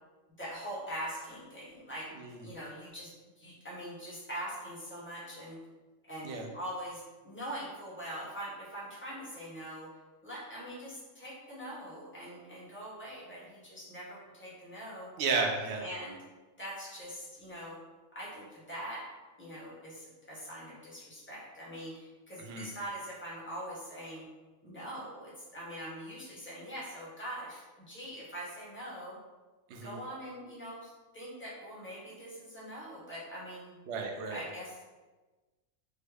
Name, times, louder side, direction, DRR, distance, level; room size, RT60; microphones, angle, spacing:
voice 1, 0.4-2.1 2.4-3.1 3.4-5.6 6.0-9.9 10.2-15.1 15.8-16.2 16.6-17.8 18.1-19.0 19.4-24.2 24.6-29.2 29.8-33.8 34.3-35.0, equal, 10° left, -7 dB, 0.9 m, -43 dB
voice 2, 2.1-2.5 6.2-6.5 15.2-15.8 22.4-22.7 29.7-29.9 33.9-34.4, right 4 dB, 65° right, 2 dB, 0.8 m, -33 dB
3.5 x 2.1 x 3.3 m, 1.2 s
omnidirectional pair, 1.4 m